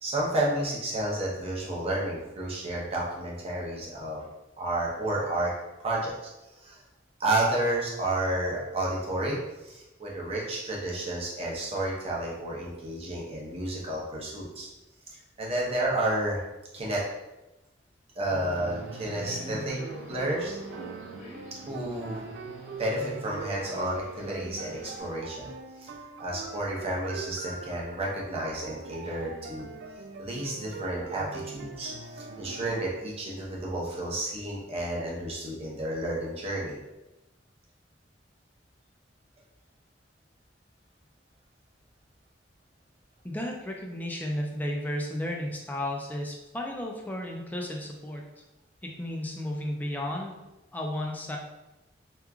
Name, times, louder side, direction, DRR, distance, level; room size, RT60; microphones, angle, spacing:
voice 1, 0.0-4.3 4.6-5.5 5.8-6.1 6.5-6.8 7.2-14.7 15.1-16.4 16.7-17.0 18.1-19.8 20.1-20.6 21.7-22.3 22.8-25.5 25.8-25.9 26.2-29.7 30.2-36.8, right 1 dB, 35° right, -4 dB, 0.7 m, -31 dB
sound 1, 18.3-32.9, right 4 dB, 70° right, 0.3 m, -42 dB
Subway metro underground, 18.4-25.0, left 2 dB, 90° left, 1.4 m, -48 dB
voice 2, 43.2-48.2 48.8-50.4 50.7-51.4, left 1 dB, 10° left, 0 dB, 0.3 m, -33 dB
3.0 x 2.3 x 2.3 m, 0.99 s
head